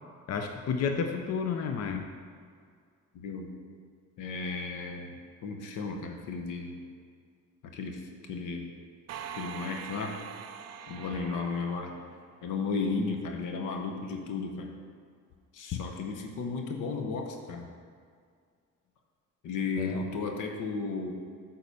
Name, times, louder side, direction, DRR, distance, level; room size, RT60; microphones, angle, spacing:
voice 1, 0.3-2.1 15.7-15.8 19.8-20.0, left 6 dB, 55° left, 5 dB, 0.7 m, -31 dB
voice 2, 3.1-3.5 4.2-5.1 5.4-6.8 7.7-8.0 8.3-8.7 9.3-10.1 10.9-11.9 12.4-14.7 15.5-17.7 19.4-21.1, left 4 dB, 90° left, 3 dB, 1.0 m, -34 dB
sound 1, 9.1-12.8, right 8 dB, 60° right, 0.5 m, -43 dB
8.4 x 4.0 x 6.8 m, 2.1 s
cardioid pair, 90°, 30 cm